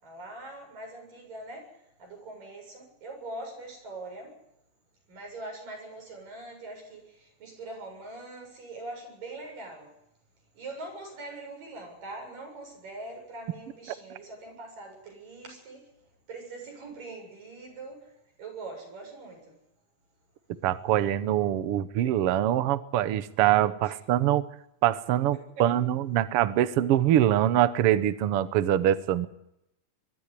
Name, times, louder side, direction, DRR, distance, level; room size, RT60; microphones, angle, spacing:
voice 1, 0.0-4.4 5.1-9.9 10.5-15.9 16.3-19.6 23.8-24.0 25.6-25.7, right 2 dB, 90° right, 1 dB, 9.1 m, -42 dB
voice 2, 20.6-24.5 24.8-29.3, right 12 dB, 65° right, 14 dB, 1.4 m, -24 dB
22.5 x 13.5 x 10.0 m, 0.83 s
omnidirectional pair, 3.8 m